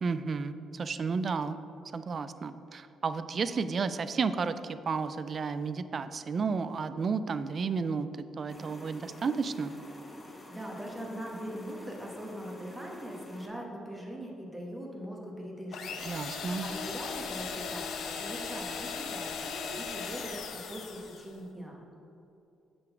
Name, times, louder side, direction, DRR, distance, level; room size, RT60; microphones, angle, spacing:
voice 1, 0.0-1.6 1.9-9.7 16.1-16.7, right 5 dB, 45° right, 12 dB, 0.3 m, -32 dB
sound 1, 8.5-13.5, left 1 dB, 25° left, 1.1 m, -49 dB
voice 2, 10.5-21.8, equal, 10° right, -1 dB, 1.2 m, -41 dB
sound 2, 15.7-21.3, left 5 dB, 75° left, 0.7 m, -38 dB
7.6 x 3.8 x 5.9 m, 2.7 s
cardioid pair, 90°, 0 cm